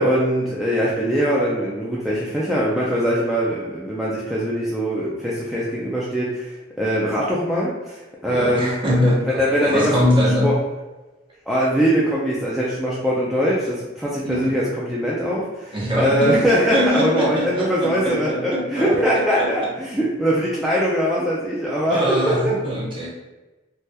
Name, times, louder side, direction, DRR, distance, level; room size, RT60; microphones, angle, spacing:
voice 1, 0.0-8.8 9.0-9.9 10.4-10.6 11.5-22.5, equal, ahead, -7 dB, 0.3 m, -22 dB
voice 2, 8.3-10.5 14.2-14.6 15.7-16.4 16.7-19.7 21.9-23.1, equal, 25° right, -5 dB, 0.8 m, -23 dB
3.3 x 2.7 x 2.2 m, 1.1 s
head